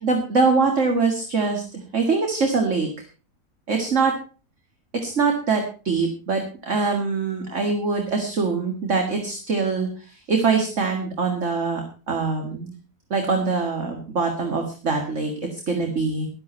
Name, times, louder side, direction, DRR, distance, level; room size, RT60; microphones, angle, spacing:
voice 1, 0.0-2.9 3.7-4.1 5.0-12.7 13.1-16.3, right 4 dB, 50° right, 3 dB, 2.3 m, -23 dB
13.0 x 12.0 x 4.4 m, 0.36 s
omnidirectional pair, 1.6 m